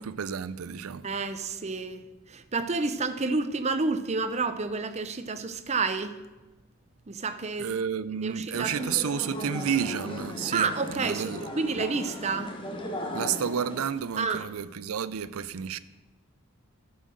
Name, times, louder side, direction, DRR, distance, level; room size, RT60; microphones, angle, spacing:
voice 1, 0.0-1.1 7.6-11.4 11.7-11.9 13.1-15.8, right 7 dB, 90° right, 0.5 m, -31 dB
voice 2, 1.0-2.0 2.3-6.2 7.1-7.7 8.2-8.9 10.5-12.6 14.2-14.4, right 4 dB, 30° right, 0.6 m, -29 dB
sound 1, 8.5-13.9, left 1 dB, 25° left, 1.3 m, -37 dB
12.5 x 5.5 x 6.4 m
head